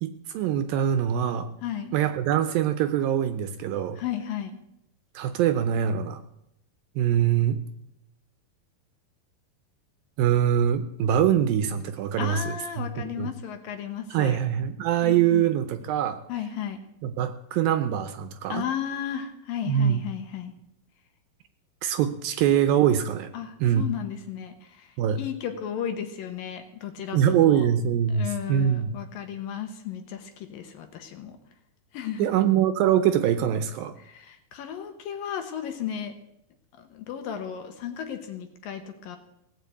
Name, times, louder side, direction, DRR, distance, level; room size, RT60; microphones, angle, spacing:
voice 1, 0.0-1.5 1.9-4.0 5.2-6.2 7.0-7.6 10.2-12.4 12.8-13.3 14.1-16.2 17.0-18.6 19.7-20.0 21.8-23.3 23.6-23.8 25.0-25.2 27.1-28.9 32.2-33.9, right 10 dB, 80° right, 9 dB, 2.3 m, -23 dB
voice 2, 1.6-2.0 4.0-4.6 12.2-14.4 15.0-15.4 16.3-16.8 18.5-20.5 23.3-27.6 28.1-31.4 31.9-32.3 34.0-36.2 36.8-39.2, left 9 dB, 70° left, 7 dB, 2.7 m, -34 dB
17.5 x 7.7 x 8.3 m, 0.82 s
omnidirectional pair, 4.6 m